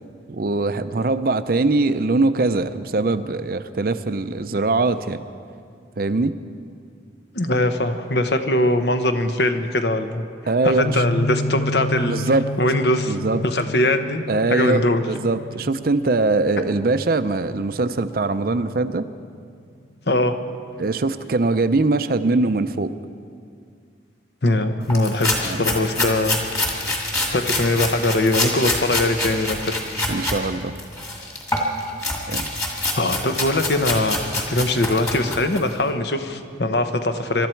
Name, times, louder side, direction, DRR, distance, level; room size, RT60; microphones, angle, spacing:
voice 1, 0.3-5.2 6.0-6.3 10.5-11.0 12.0-12.4 13.1-13.4 14.3-19.1 20.8-22.9 25.4-25.6 30.1-30.7 32.3-32.5, right 3 dB, 50° right, 11 dB, 0.5 m, -22 dB
voice 2, 7.3-10.2 10.6-12.2 12.6-13.2 13.4-14.2 14.5-15.0 20.1-20.4 24.4-26.4 27.3-29.6 33.0-37.5, left 1 dB, 65° left, 7 dB, 1.0 m, -21 dB
sound 1, 10.8-19.5, equal, 85° left, 4.7 m, -31 dB
sound 2, 24.9-30.4 30.8-35.7, left 2 dB, 20° left, 2.0 m, -26 dB
24.0 x 12.5 x 4.5 m, 2.3 s
head